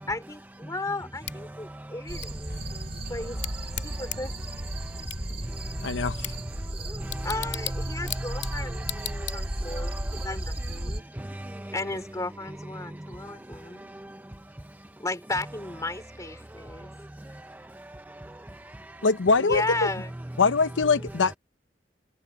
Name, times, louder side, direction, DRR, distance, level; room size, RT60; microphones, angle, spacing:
voice 1, 0.0-2.5 3.1-3.4 3.8-4.7 7.2-11.1 11.7-13.9 15.0-16.9 19.4-20.2, left 2 dB, 20° left, 3.1 m, -34 dB
Bicycle / Tick, 1.2-9.8, left 13 dB, 70° left, 2.2 m, -40 dB
voice 2, 1.5-4.2 4.7-11.8 12.8-14.9 16.4-18.1, right 1 dB, 10° right, 0.5 m, -41 dB
sound 1, 2.1-11.0, right 1 dB, 30° right, 2.7 m, -34 dB
sound 2, 2.5-8.5, equal, 60° right, 7.1 m, -46 dB
voice 3, 5.8-6.3 19.0-19.9 20.4-21.4, left 4 dB, 85° left, 0.7 m, -23 dB
head